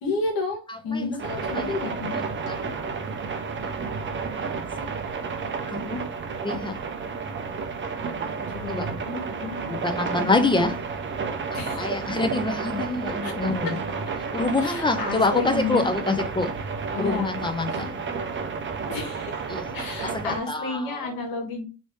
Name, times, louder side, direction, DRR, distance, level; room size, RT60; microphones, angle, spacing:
voice 1, 0.0-2.2 8.4-9.7 10.2-10.5 11.5-12.1 13.2-13.3 13.6-13.9 14.6-15.9 16.9-17.4 17.7-17.8 18.9-21.6, left 4 dB, 60° left, 1.4 m, -31 dB
voice 2, 0.7-1.7 2.1-2.8 5.7-6.0 6.4-6.8 8.7-8.9 9.7-10.8 11.5-13.8 14.3-16.5 17.0-18.0 19.5-19.6 20.0-21.1, left 3 dB, 10° left, 0.7 m, -26 dB
sound 1, 1.2-20.4, right 5 dB, 30° right, 0.7 m, -31 dB
3.1 x 2.9 x 3.1 m
hypercardioid pair, 60°, 40 cm